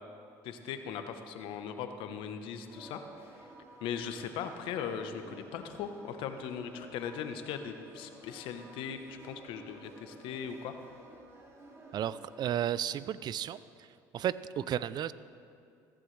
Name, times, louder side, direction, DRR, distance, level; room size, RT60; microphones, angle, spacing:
voice 1, 0.4-3.0 3.3-3.5 3.8-10.7, left 7 dB, 70° left, 8 dB, 1.1 m, -39 dB
sound 1, 2.7-12.5, right 2 dB, 30° right, 2.7 m, -53 dB
voice 2, 11.9-13.6 14.1-15.1, right 10 dB, 50° right, 17 dB, 0.4 m, -33 dB
15.5 x 14.5 x 3.3 m, 2.4 s
supercardioid pair, 75°, 9 cm